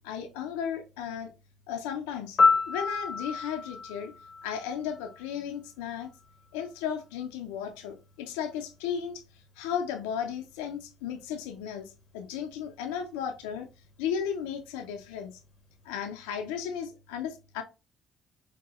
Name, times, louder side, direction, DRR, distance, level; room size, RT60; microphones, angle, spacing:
voice 1, 0.0-1.3 1.7-2.4 2.7-4.1 4.4-6.1 6.5-9.2 9.6-13.7 14.0-15.4 15.8-17.6, left 8 dB, 90° left, 0.5 m, -35 dB
Piano, 2.4-5.3 13.5-13.7, left 4 dB, 55° left, 0.7 m, -28 dB
4.7 x 2.2 x 3.0 m
supercardioid pair, 60°, 0 cm